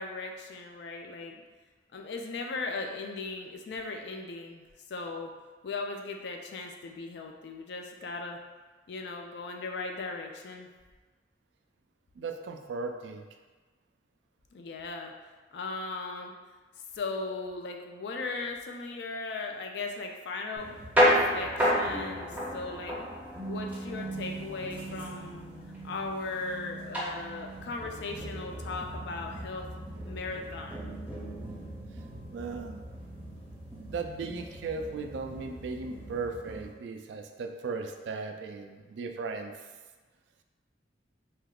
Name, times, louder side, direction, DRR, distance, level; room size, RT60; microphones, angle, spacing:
voice 1, 0.0-1.4 1.9-4.6 4.9-5.3 5.6-8.4 8.9-10.7 14.5-15.2 15.5-16.3 16.9-20.7 21.0-23.0 23.4-25.5 25.8-29.7 30.0-30.8, left 3 dB, 65° left, 3 dB, 0.4 m, -37 dB
voice 2, 12.2-13.3 32.3-32.8 33.9-39.5, right 4 dB, 75° right, 5 dB, 0.3 m, -37 dB
sound 1, 20.6-36.7, equal, 10° right, 0.6 m, -33 dB
3.4 x 2.9 x 2.3 m, 1.3 s
head